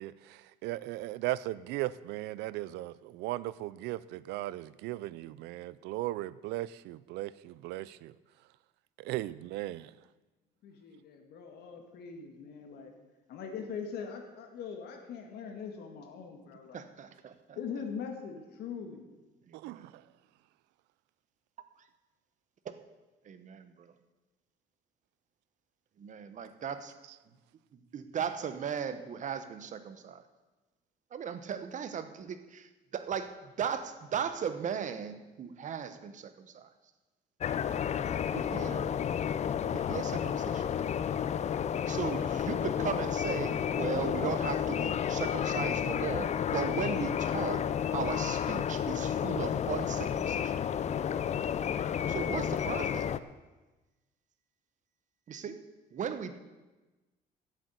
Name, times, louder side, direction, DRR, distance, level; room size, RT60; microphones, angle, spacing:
voice 1, 0.0-8.1 9.0-9.9 19.5-19.9, right 16 dB, 90° right, 19 dB, 0.5 m, -37 dB
voice 2, 10.6-12.9 13.3-16.8 17.6-19.0, left 6 dB, 70° left, 3 dB, 2.0 m, -41 dB
voice 3, 16.7-17.6 19.5-19.9 22.6-22.7 23.2-23.9 26.0-26.9 27.7-30.2 31.1-36.7 38.3-38.9 39.7-40.7 41.9-50.5 52.1-53.1 55.3-55.6 55.9-56.4, right 7 dB, 45° right, 10 dB, 1.2 m, -37 dB
sound 1, 37.4-53.2, left 8 dB, 40° left, 0.6 m, -31 dB
11.0 x 8.2 x 8.1 m, 1.2 s
cardioid pair, 110°, 17 cm